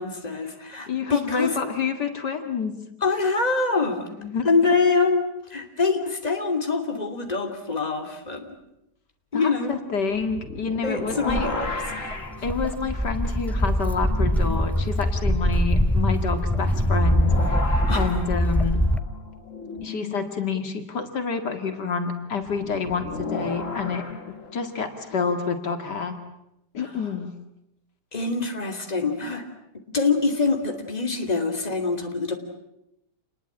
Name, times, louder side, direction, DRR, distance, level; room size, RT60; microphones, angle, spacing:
voice 1, 0.0-1.6 3.0-4.0 4.4-8.5 9.3-9.8 10.8-11.7 17.9-18.2 26.8-26.9 28.1-29.4 29.9-32.3, left 4 dB, 25° left, 4 dB, 2.9 m, -25 dB
voice 2, 0.9-2.8 4.2-4.5 9.3-11.5 12.4-17.6 17.9-18.8 19.8-26.2 26.7-27.3, left 5 dB, 80° left, 6 dB, 2.7 m, -28 dB
sound 1, 10.1-14.6 15.0-15.1 16.3-20.3 22.4-25.3, left 2 dB, 50° left, 3.0 m, -35 dB
Walk footsteps, 11.3-19.0, equal, ahead, 0.3 m, -23 dB
28.5 x 21.0 x 8.8 m, 0.86 s
omnidirectional pair, 1.8 m